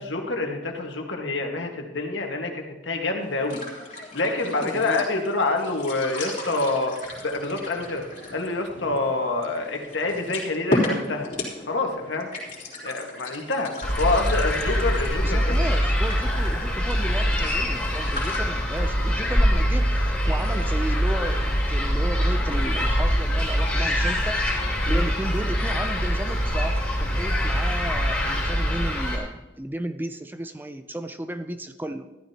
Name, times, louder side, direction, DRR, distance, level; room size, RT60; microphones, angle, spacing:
voice 1, 0.0-3.6 4.1-7.0 7.2-8.0 8.3-11.3 11.7-12.3 12.8-13.7 14.0-15.6 24.8-25.1, left 2 dB, 85° left, 2 dB, 1.7 m, -27 dB
sound 1, 3.2-18.4, left 2 dB, 40° left, 3.4 m, -35 dB
voice 2, 4.4-5.0 15.2-24.4 24.9-32.1, right 1 dB, 10° right, 9 dB, 0.5 m, -34 dB
sound 2, 13.8-29.2, equal, 5° left, 3.1 m, -23 dB
14.0 x 12.5 x 2.9 m, 1.1 s
head